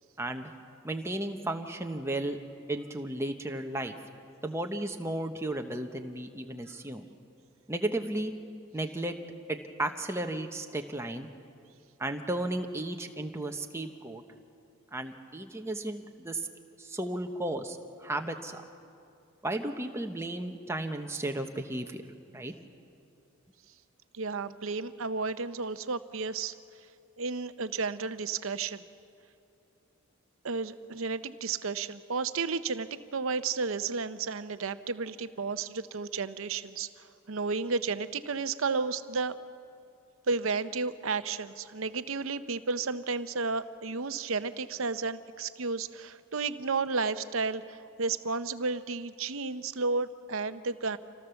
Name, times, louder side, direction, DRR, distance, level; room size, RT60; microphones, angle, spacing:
voice 1, 0.2-0.5 0.8-2.4 2.7-3.9 4.4-7.0 7.7-8.3 8.7-9.1 9.5-11.3 12.0-14.2 14.9-16.5 16.8-18.6 19.4-22.0 22.3-22.5, right 1 dB, 10° right, 4 dB, 1.1 m, -34 dB
voice 2, 24.1-26.5 27.2-28.8 30.4-39.4 40.3-51.0, right 4 dB, 65° right, 12 dB, 0.8 m, -32 dB
26.5 x 17.0 x 7.0 m, 2.6 s
head